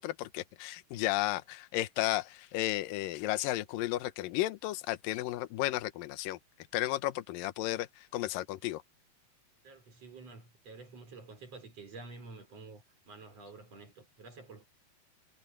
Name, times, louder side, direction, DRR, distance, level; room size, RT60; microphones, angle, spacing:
voice 1, 0.0-6.4 6.7-8.8, left 16 dB, 70° left, 2.4 m, -33 dB
voice 2, 9.6-14.7, right 3 dB, 40° right, 5.7 m, -50 dB
omnidirectional pair, 4.7 m